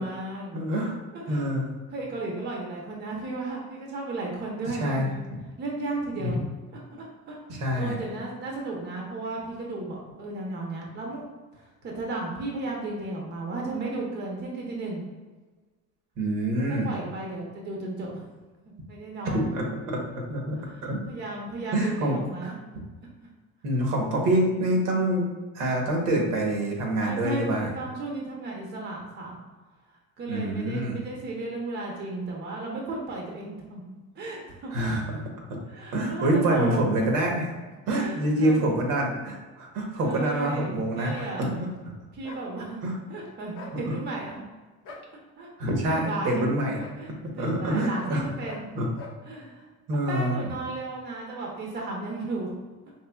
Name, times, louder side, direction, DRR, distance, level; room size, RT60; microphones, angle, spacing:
voice 1, 0.0-1.5 1.9-5.1 5.6-6.4 6.7-11.3 11.5-15.0 16.6-18.2 18.9-19.5 20.6-22.5 24.1-24.4 27.0-29.4 30.2-33.8 34.1-34.8 35.7-37.0 37.9-38.6 40.0-41.5 42.1-42.8 43.1-44.4 45.4-45.5 45.9-46.4 47.0-48.7 49.2-49.6 50.1-52.5, right 2 dB, 30° right, -1 dB, 0.8 m, -34 dB
voice 2, 0.5-1.0 1.3-1.8 4.8-5.1 6.2-6.4 7.5-8.0 16.2-16.9 19.3-21.0 21.7-22.2 23.6-25.3 25.5-27.7 30.3-31.0 34.7-35.2 35.5-35.6 35.9-37.5 37.9-41.5 42.8-42.9 43.9-44.0 45.6-46.8 47.4-48.3 48.7-48.9 49.9-50.4, right 1 dB, 65° right, 0 dB, 1.1 m, -26 dB
sound 1, 41.1-41.3 42.2-42.5 43.5-43.8 44.8-45.1 45.9-46.1 46.8-47.0 47.9-48.2 48.4-48.7 48.9-49.2, left 3 dB, 40° left, 0.6 m, -43 dB
4.4 x 3.2 x 2.3 m, 1.3 s
cardioid pair, 135°, 34 cm